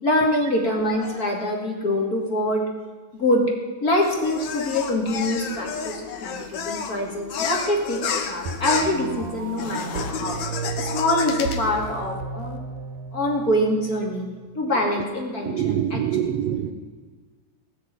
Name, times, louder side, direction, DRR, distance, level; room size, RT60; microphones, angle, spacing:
voice 1, 0.0-2.6 3.1-3.4 3.8-10.4 10.8-12.6 13.1-14.3 14.5-16.0, left 1 dB, 30° left, 0 dB, 2.6 m, -24 dB
sound 1, 4.0-12.0, left 6 dB, 65° left, 2.4 m, -31 dB
sound 2, 8.5-14.5, right 4 dB, 90° right, 2.7 m, -34 dB
voice 2, 15.4-16.7, right 10 dB, 70° right, 9 dB, 1.6 m, -25 dB
18.5 x 6.6 x 9.1 m, 1.4 s
omnidirectional pair, 3.6 m